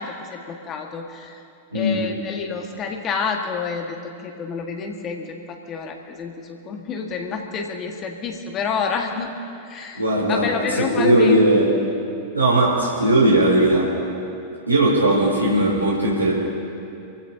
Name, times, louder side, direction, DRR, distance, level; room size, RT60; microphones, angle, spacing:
voice 1, 0.0-1.4 1.7-4.0 4.2-9.3 9.7-10.0 10.3-11.4, left 5 dB, 30° left, 2 dB, 1.8 m, -29 dB
voice 2, 10.0-10.5 11.0-11.7 12.3-13.9 14.7-16.3, right 1 dB, 85° right, -6 dB, 3.7 m, -18 dB
27.5 x 15.5 x 2.9 m, 2.6 s
figure-of-eight pair, 90°, 0 cm